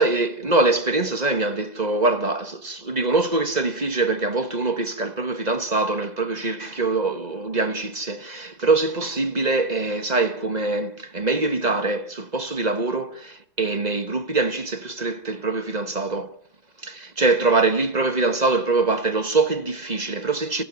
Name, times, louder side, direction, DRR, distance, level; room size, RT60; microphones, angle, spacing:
voice 1, 0.0-16.3 16.8-20.6, right 3 dB, 25° right, 1.2 m, -23 dB
29.5 x 12.0 x 9.2 m
omnidirectional pair, 2.1 m